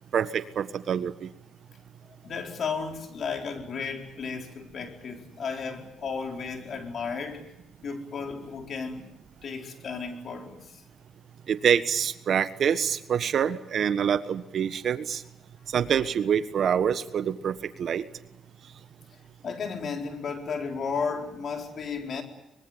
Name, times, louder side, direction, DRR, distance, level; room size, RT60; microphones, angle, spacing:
voice 1, 0.1-1.3 11.5-15.2 15.7-18.0, right 8 dB, 60° right, 1.5 m, -26 dB
voice 2, 2.2-7.5 7.8-9.1 9.4-10.8 15.6-15.7 19.4-22.2, left 5 dB, 55° left, 4.5 m, -34 dB
24.0 x 23.0 x 9.1 m
cardioid pair, 90°, 0 cm